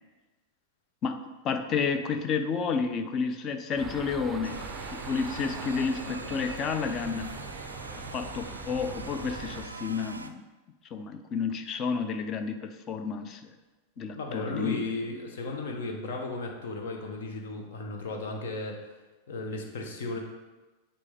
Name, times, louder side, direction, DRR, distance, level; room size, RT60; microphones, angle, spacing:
voice 1, 1.4-4.6 4.9-7.3 8.1-10.4 10.9-13.4 14.0-14.9, left 5 dB, 30° left, 7 dB, 0.6 m, -31 dB
sound 1, 3.8-9.7, right 4 dB, 20° right, 0.6 m, -42 dB
sound 2, 4.4-10.3, right 2 dB, 80° right, 0.4 m, -42 dB
voice 2, 14.0-18.8 19.3-20.2, left 3 dB, 55° left, 2 dB, 1.1 m, -35 dB
8.2 x 4.3 x 3.6 m, 1.2 s
figure-of-eight pair, 90°, 0 cm